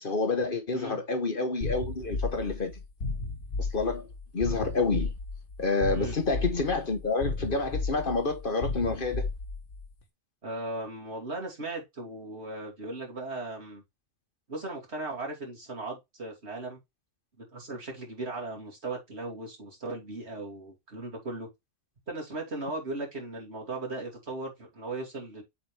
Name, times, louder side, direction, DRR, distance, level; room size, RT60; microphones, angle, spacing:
voice 1, 0.0-2.7 3.6-4.1 4.3-5.1 5.6-9.3, left 3 dB, 50° left, 1.3 m, -28 dB
sound 1, 1.6-9.9, left 3 dB, 85° left, 1.7 m, -34 dB
voice 2, 10.4-13.8 14.5-16.8 17.4-21.5 22.1-25.4, right 2 dB, 65° right, 3.0 m, -37 dB
8.5 x 4.3 x 3.4 m
omnidirectional pair, 1.2 m